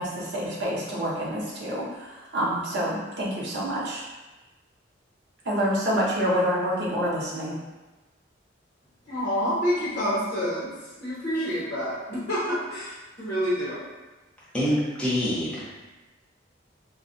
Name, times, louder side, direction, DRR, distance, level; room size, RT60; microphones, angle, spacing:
voice 1, 0.0-4.0 5.4-7.5, equal, 60° right, -6 dB, 0.7 m, -27 dB
voice 2, 9.1-10.7 11.0-12.9 13.2-13.8, equal, 45° left, -9 dB, 0.8 m, -27 dB
voice 3, 14.5-15.7, equal, 5° left, -10 dB, 0.8 m, -26 dB
2.3 x 2.2 x 3.7 m, 1.1 s
head